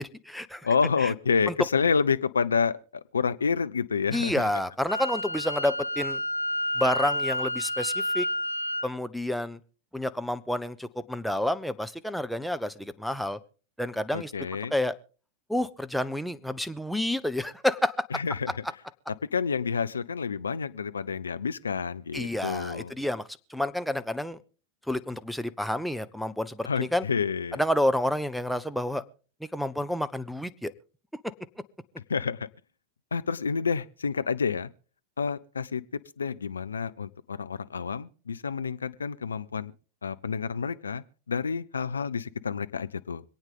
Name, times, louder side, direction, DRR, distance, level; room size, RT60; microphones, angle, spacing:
voice 1, 0.0-0.7 1.0-1.1 1.5-1.6 4.1-6.2 6.8-8.3 8.8-9.6 9.9-13.4 13.8-14.3 14.7-15.0 15.5-18.1 22.1-23.2 23.5-24.4 24.9-27.1 27.5-29.0 29.5-30.7, left 1 dB, ahead, 9 dB, 0.8 m, -29 dB
voice 2, 0.6-4.5 14.1-14.7 18.1-18.5 19.3-22.9 26.6-27.6 32.1-32.5 33.1-34.7 35.2-35.8 36.2-39.7 40.0-43.2, left 5 dB, 75° left, 13 dB, 0.5 m, -29 dB
Wind instrument woodwind instrument, 4.9-8.9, left 1 dB, 90° right, 0.7 m, -30 dB
25.5 x 8.9 x 3.7 m, 0.39 s
figure-of-eight pair, 90°, 0 cm